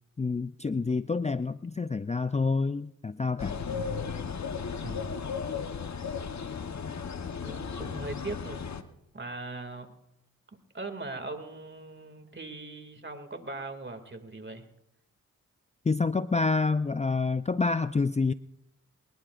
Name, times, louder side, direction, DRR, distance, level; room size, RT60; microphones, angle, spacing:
voice 1, 0.2-3.6 15.9-18.3, left 4 dB, 20° left, 13 dB, 0.5 m, -28 dB
sound 1, 3.4-8.8, left 6 dB, 55° left, 1.2 m, -35 dB
voice 2, 4.8-5.3 7.2-8.7 9.1-9.9 10.7-14.7, right 2 dB, 35° right, 7 dB, 2.5 m, -40 dB
23.5 x 20.5 x 2.6 m, 0.80 s
cardioid pair, 50°, 33 cm